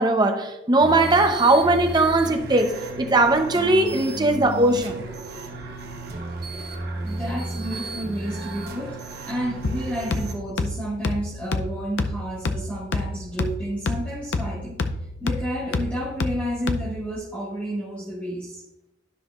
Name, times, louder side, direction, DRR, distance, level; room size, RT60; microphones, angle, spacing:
voice 1, 0.0-5.1, right 2 dB, 25° right, 0.8 m, -19 dB
sound 1, 0.8-10.3, right 2 dB, 60° right, 1.2 m, -34 dB
voice 2, 7.0-18.6, equal, 5° left, 1.7 m, -31 dB
sound 2, 9.6-17.2, left 2 dB, 80° left, 0.6 m, -29 dB
12.5 x 5.8 x 2.5 m
head